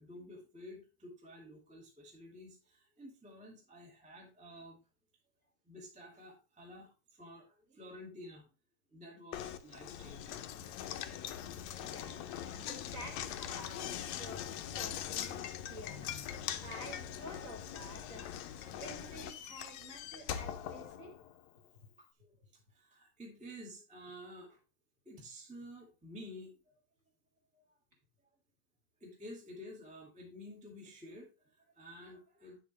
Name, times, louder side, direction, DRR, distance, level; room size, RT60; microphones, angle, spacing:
voice 1, 0.0-4.8 5.6-8.4 8.9-10.8 22.0-22.3 22.7-24.6 25.0-26.8 27.5-27.6 29.0-32.6, equal, 5° right, -1 dB, 1.3 m, -51 dB
Knock, 9.3-21.5, left 10 dB, 75° left, 1.8 m, -42 dB
voice 2, 11.8-14.5 14.8-18.3 18.7-21.2, right 1 dB, 30° right, 0 dB, 2.2 m, -50 dB
9.4 x 7.2 x 3.2 m, 0.31 s
omnidirectional pair, 3.6 m